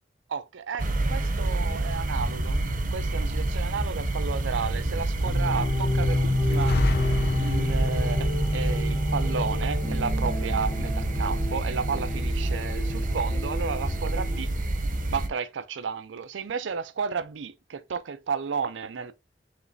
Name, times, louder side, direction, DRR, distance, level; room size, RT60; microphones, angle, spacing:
voice 1, 0.3-2.6 2.9-6.8 7.4-14.5 15.1-19.1, right 6 dB, 85° right, 0.5 m, -32 dB
sound 1, 0.8-15.3, right 2 dB, 50° right, 0.7 m, -28 dB
sound 2, 5.2-14.4, left 2 dB, 30° left, 1.7 m, -30 dB
sound 3, 6.4-8.1, left 2 dB, 60° left, 0.5 m, -29 dB
5.0 x 3.2 x 2.6 m
head